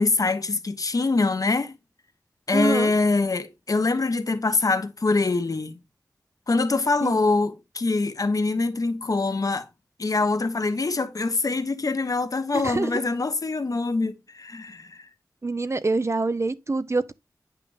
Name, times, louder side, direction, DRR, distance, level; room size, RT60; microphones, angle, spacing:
voice 1, 0.0-1.7 2.5-5.8 6.5-9.7 10.0-15.0, left 3 dB, 60° left, 1.1 m, -24 dB
voice 2, 2.5-2.9 7.0-7.2 12.5-13.0 15.4-17.1, right 3 dB, 45° right, 0.6 m, -25 dB
9.4 x 5.8 x 3.5 m
wide cardioid pair, 55°, 7 cm